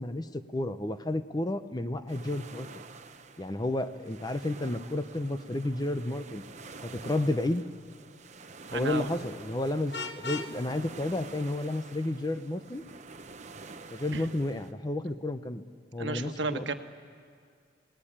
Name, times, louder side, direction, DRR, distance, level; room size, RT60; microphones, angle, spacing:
voice 1, 0.0-2.8 3.4-6.4 6.8-7.6 8.7-12.8 13.9-15.6 15.9-16.7, left 1 dB, 20° left, 10 dB, 0.7 m, -31 dB
sound 1, 2.1-14.7, right 4 dB, 40° right, 0.9 m, -48 dB
voice 2, 8.7-9.1 14.1-14.2 16.0-16.7, right 3 dB, 85° right, 7 dB, 1.3 m, -32 dB
Vehicle horn car horn honking, 9.9-10.5, left 4 dB, 70° left, 1.2 m, -36 dB
29.5 x 18.5 x 8.7 m, 2.1 s
head